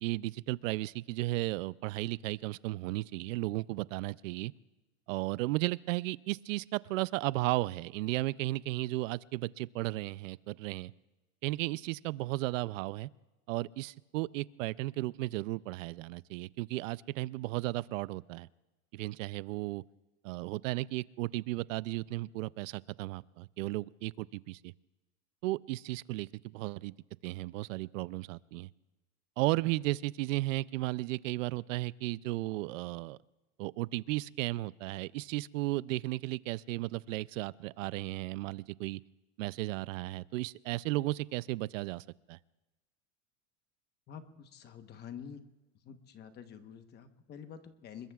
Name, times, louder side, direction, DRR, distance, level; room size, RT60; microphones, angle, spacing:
voice 1, 0.0-4.5 5.1-10.9 11.4-13.1 13.5-18.5 18.9-19.8 20.2-24.7 25.4-26.9 27.2-28.7 29.4-33.2 33.6-39.0 39.4-42.4, right 19 dB, 80° right, 20 dB, 0.5 m, -34 dB
voice 2, 44.1-45.4 45.8-48.1, left 7 dB, 25° left, 8 dB, 1.1 m, -48 dB
27.5 x 21.5 x 2.4 m, 1.1 s
supercardioid pair, 160°, 39 cm